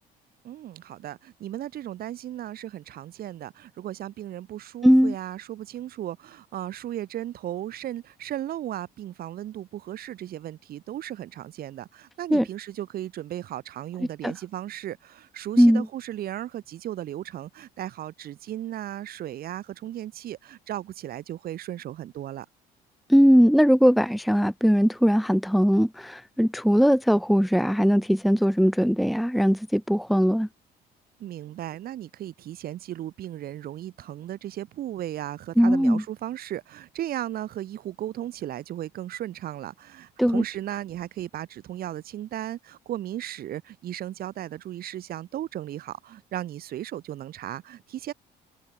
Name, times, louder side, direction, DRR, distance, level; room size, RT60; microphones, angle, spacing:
voice 1, 0.4-22.5 31.2-48.1, right 12 dB, 60° right, 2.1 m, -36 dB
voice 2, 4.8-5.1 12.3-12.4 14.2-14.3 15.6-15.9 23.1-30.5 35.6-36.0 40.2-40.4, equal, ahead, 0.8 m, -20 dB
cardioid pair, 110°, 17 cm